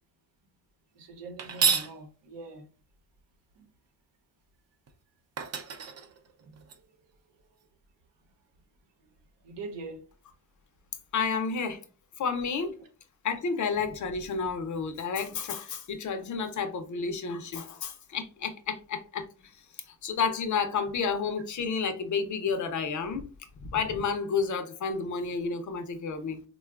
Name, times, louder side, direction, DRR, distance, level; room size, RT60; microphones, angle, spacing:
voice 1, 0.9-2.7 3.5-3.7 9.4-10.1 12.8-12.9, right 3 dB, 65° right, 0.9 m, -42 dB
sound 1, 1.4-1.9 4.9-5.0 5.4-6.7, right 6 dB, 35° right, 0.5 m, -29 dB
voice 2, 11.1-11.8 12.2-12.8 13.2-19.3 20.0-23.3 23.6-26.4, left 5 dB, 40° left, 0.6 m, -31 dB
3.6 x 2.3 x 2.3 m
cardioid pair, 90°, 46 cm